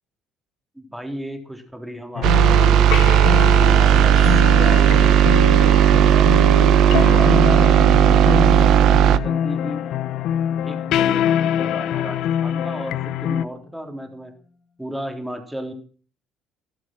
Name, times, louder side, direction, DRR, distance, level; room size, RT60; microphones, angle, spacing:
voice 1, 0.8-3.2 3.7-4.2 4.6-5.4 5.9-9.8 10.6-14.3 14.8-15.7, equal, 5° right, 5 dB, 3.5 m, -34 dB
sound 1, 2.1-13.4, left 11 dB, 65° left, 0.9 m, -24 dB
sound 2, 2.2-9.2, right 11 dB, 60° right, 1.0 m, -14 dB
sound 3, 3.6-14.2, left 4 dB, 25° left, 2.6 m, -40 dB
16.5 x 13.0 x 6.1 m, 0.42 s
cardioid pair, 140°, 0 cm